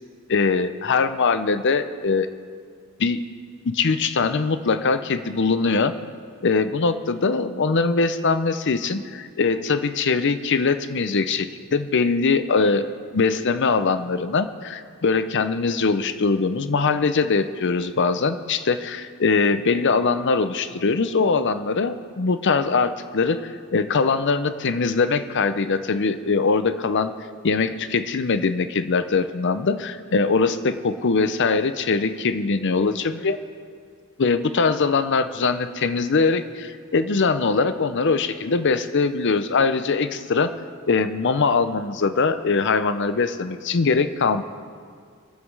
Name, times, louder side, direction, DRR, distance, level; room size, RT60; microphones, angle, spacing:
voice 1, 0.3-2.3 3.0-3.3 3.6-6.0 6.4-12.9 13.1-27.1 27.4-33.4 34.2-40.5 40.9-44.4, left 4 dB, 55° left, 12 dB, 0.6 m, -22 dB
22.5 x 7.5 x 4.8 m, 2.2 s
head